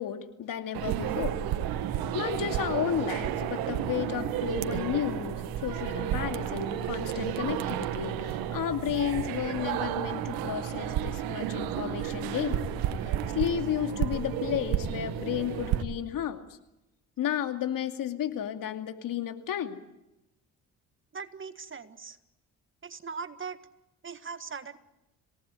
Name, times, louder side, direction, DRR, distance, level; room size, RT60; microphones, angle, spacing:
voice 1, 0.0-1.4 2.1-12.7 13.0-16.6 17.2-19.8, left 10 dB, 70° left, 7 dB, 2.6 m, -32 dB
sound 1, 0.7-15.8, right 10 dB, 85° right, 1.6 m, -32 dB
voice 2, 21.1-22.2 22.8-23.6 24.0-24.8, right 5 dB, 35° right, 11 dB, 1.7 m, -40 dB
27.5 x 18.0 x 9.7 m, 0.94 s
supercardioid pair, 75°, 35 cm